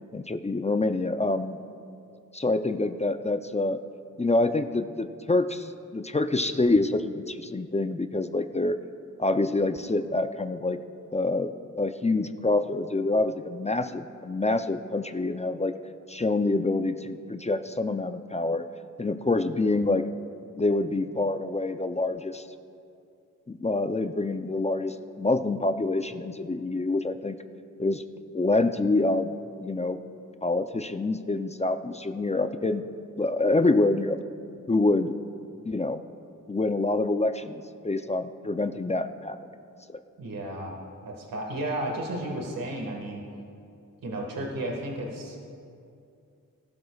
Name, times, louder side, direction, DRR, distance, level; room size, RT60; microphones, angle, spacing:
voice 1, 0.1-1.6 2.3-3.8 4.2-8.8 9.2-10.8 11.1-15.7 16.1-18.6 19.0-20.1 20.6-22.5 23.5-27.4 27.8-28.0 28.3-30.0 30.4-32.8 33.2-34.2 34.7-35.1 35.6-36.0 36.5-39.4 39.9-40.0, left 2 dB, 20° left, 9 dB, 0.5 m, -26 dB
voice 2, 40.2-40.7 41.0-43.3 44.0-45.4, right 1 dB, 80° right, 0 dB, 1.8 m, -33 dB
19.5 x 12.0 x 2.4 m, 2.5 s
cardioid pair, 60°, 34 cm